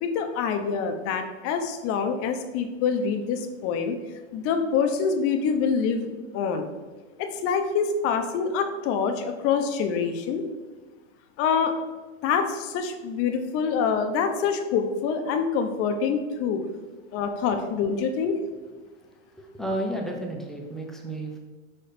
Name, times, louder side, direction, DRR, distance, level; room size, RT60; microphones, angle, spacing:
voice 1, 0.0-4.0 4.3-6.7 7.2-10.4 11.4-11.7 12.2-16.6 17.1-18.4, left 6 dB, 35° left, 6 dB, 0.8 m, -26 dB
voice 2, 19.2-21.4, right 1 dB, ahead, 0 dB, 0.7 m, -32 dB
5.5 x 4.4 x 5.0 m, 1.3 s
supercardioid pair, 135°, 38 cm